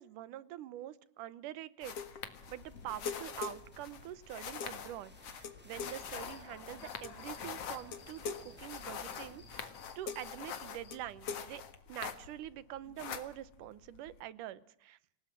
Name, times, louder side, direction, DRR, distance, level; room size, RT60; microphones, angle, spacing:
voice 1, 0.0-2.0 2.5-11.6 11.9-15.0, right 13 dB, 75° right, 18 dB, 2.5 m, -45 dB
sound 1, 1.8-12.5 12.8-14.2, left 7 dB, 50° left, 2.5 m, -43 dB
sound 2, 2.4-9.6, right 1 dB, 5° right, 2.9 m, -60 dB
Human voice / Cricket, 5.8-11.0, left 6 dB, 75° left, 4.3 m, -56 dB
27.0 x 18.5 x 7.5 m, 0.68 s
omnidirectional pair, 3.7 m